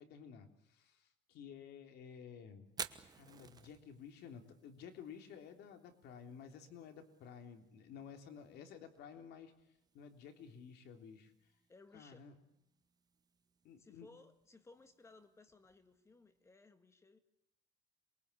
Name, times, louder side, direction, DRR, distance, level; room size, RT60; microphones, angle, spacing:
voice 1, 0.0-2.7 3.1-9.5 9.9-11.3 11.9-12.3 13.6-14.1, left 7 dB, 55° left, 6 dB, 3.5 m, -53 dB
Fire, 2.7-16.5, right 6 dB, 20° right, 1.2 m, -56 dB
voice 2, 11.7-12.3 13.8-17.2, left 3 dB, 15° left, 10 dB, 1.7 m, -61 dB
28.0 x 22.5 x 8.5 m, 0.81 s
cardioid pair, 170°, 20 cm